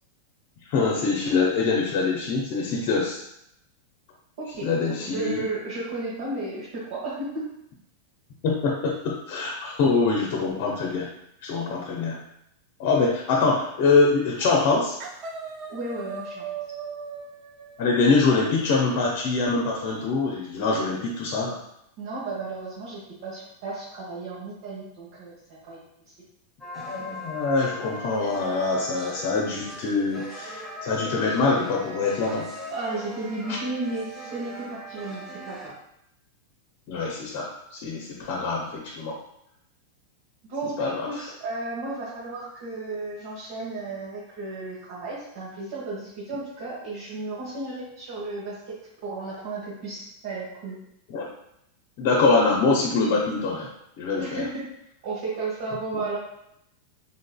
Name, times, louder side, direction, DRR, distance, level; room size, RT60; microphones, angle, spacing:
voice 1, 0.7-3.2 4.6-5.4 8.4-11.1 11.4-12.2 12.8-15.0 17.8-21.6 26.9-32.5 33.5-33.6 36.9-39.2 40.8-41.2 51.1-51.2 52.0-53.7 54.0-54.4, left 4 dB, 55° left, -1 dB, 0.7 m, -24 dB
voice 2, 4.4-7.4 15.7-16.5 22.0-25.3 25.7-25.8 32.7-35.7 40.5-48.7 49.0-50.8 54.2-54.6 55.0-56.2, right 2 dB, 60° right, -8 dB, 1.3 m, -33 dB
sound 1, 13.8-14.1 14.4-14.7 15.0-19.1, right 5 dB, 40° right, 0.7 m, -39 dB
sound 2, 26.6-35.7, left 1 dB, 5° left, 1.2 m, -39 dB
3.8 x 3.6 x 2.3 m, 0.79 s
hypercardioid pair, 95°, 0 cm